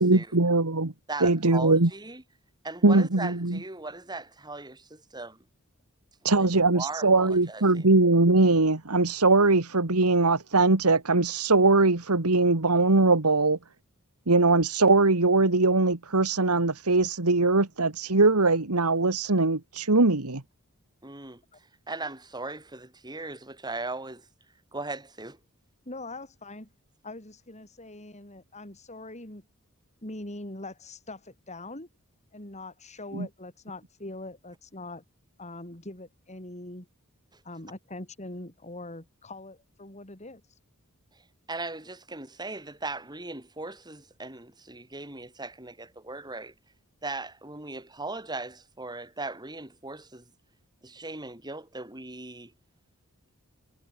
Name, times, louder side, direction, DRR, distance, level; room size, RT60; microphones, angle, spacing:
voice 1, 0.0-0.9 1.2-1.9 2.8-3.6 6.2-13.6 14.3-20.4 33.1-33.3, right 3 dB, 85° right, 1.9 m, -21 dB
voice 2, 1.1-2.2 2.6-5.4 6.3-7.8 21.0-21.4 21.9-24.2 24.7-25.4 41.5-46.5 47.0-50.2 50.8-52.5, right 3 dB, 20° right, 6.6 m, -38 dB
voice 3, 25.8-26.7 27.0-29.5 30.0-31.9 32.3-35.0 35.4-36.9 37.4-40.4, left 2 dB, 30° left, 4.7 m, -42 dB
head